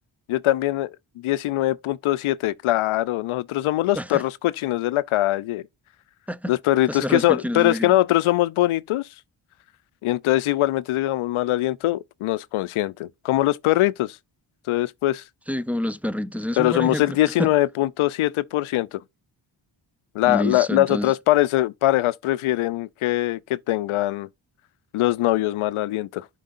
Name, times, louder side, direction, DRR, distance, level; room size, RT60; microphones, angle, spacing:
voice 1, 0.3-0.9 1.2-5.6 6.5-9.1 10.0-14.2 14.7-15.2 16.6-19.0 20.1-24.3 24.9-26.2, left 15 dB, 80° left, 0.6 m, -22 dB
voice 2, 6.9-7.9 15.5-17.5 20.3-21.1, equal, 5° right, 0.5 m, -28 dB
11.5 x 4.6 x 2.5 m
cardioid pair, 55°, 49 cm